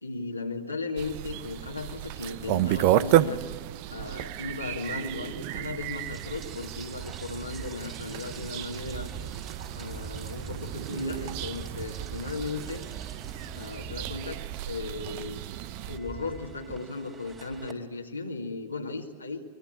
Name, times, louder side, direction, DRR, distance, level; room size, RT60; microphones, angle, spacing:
voice 1, 0.0-3.4 3.9-9.1 9.7-12.9 13.5-14.4 14.7-15.5 15.9-19.4, left 3 dB, 85° left, 0 dB, 2.1 m, -36 dB
sound 1, 1.0-16.0, right 13 dB, 45° right, 0.8 m, -32 dB
Rain, 5.9-17.7, right 6 dB, 25° right, 3.5 m, -43 dB
23.5 x 22.0 x 8.9 m, 1.5 s
figure-of-eight pair, 90°, 0 cm